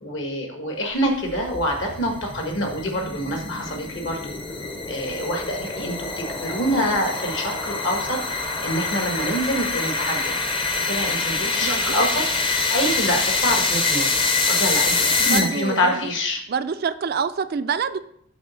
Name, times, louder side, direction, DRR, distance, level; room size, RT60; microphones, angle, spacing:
voice 1, 0.0-4.2 4.9-10.3 10.7-14.2 14.5-16.4, equal, 60° left, 2 dB, 1.6 m, -26 dB
sound 1, 1.1-15.9, left 3 dB, 25° left, 0.7 m, -25 dB
voice 2, 11.6-11.9 15.2-16.1 16.5-18.0, right 6 dB, 50° right, 11 dB, 0.4 m, -26 dB
6.1 x 4.1 x 6.3 m, 0.69 s
head